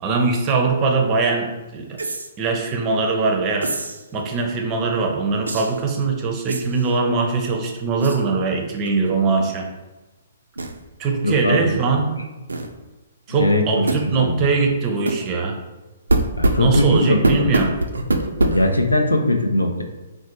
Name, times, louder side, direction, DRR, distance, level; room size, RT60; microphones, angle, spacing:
voice 1, 0.0-1.9 2.4-3.7 4.1-9.7 11.0-12.1 13.3-15.6 16.6-17.7, right 4 dB, 25° right, 2 dB, 0.5 m, -21 dB
sound 1, 2.0-2.3 3.6-4.0 5.5-5.8 6.5-6.9 8.0-8.2 8.8-9.1 9.4-9.5 10.6-10.8 12.5-12.7 13.9-14.1 15.1-15.2 16.1-18.8, right 2 dB, 75° right, 0.3 m, -23 dB
voice 2, 11.2-11.8 13.3-14.5 16.4-17.5 18.4-19.8, left 1 dB, 85° left, 4 dB, 0.5 m, -21 dB
4.0 x 2.1 x 3.0 m, 1.1 s
figure-of-eight pair, 125°, 0 cm